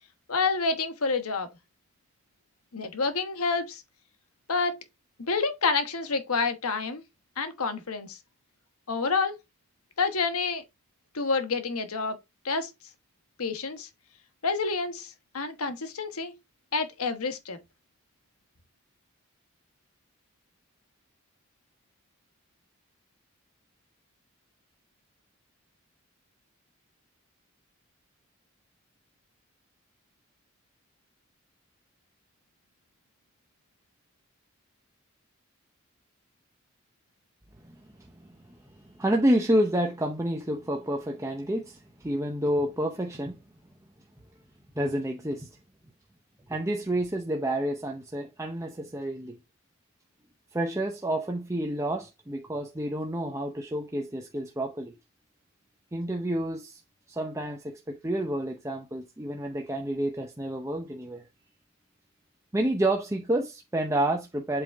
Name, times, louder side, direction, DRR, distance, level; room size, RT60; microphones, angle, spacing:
voice 1, 0.3-1.5 2.7-3.8 4.5-4.8 5.2-7.0 7.4-8.2 8.9-9.4 10.0-10.6 11.1-12.2 12.4-12.7 13.4-13.9 14.4-16.4 16.7-17.6, left 4 dB, 85° left, 1.2 m, -28 dB
voice 2, 37.6-43.4 44.8-45.5 46.5-49.4 50.5-54.9 55.9-56.8 57.1-61.3 62.5-64.6, right 1 dB, 15° right, 0.6 m, -29 dB
7.9 x 3.8 x 3.5 m
head